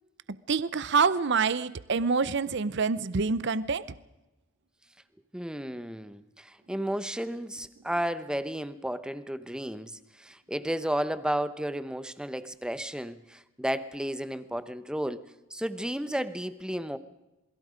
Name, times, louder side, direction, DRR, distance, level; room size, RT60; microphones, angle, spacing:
voice 1, 0.5-3.9, right 5 dB, 60° right, 16 dB, 0.7 m, -26 dB
voice 2, 5.3-15.2 15.5-17.0, equal, 5° right, 13 dB, 0.9 m, -33 dB
27.5 x 22.0 x 5.1 m, 0.99 s
head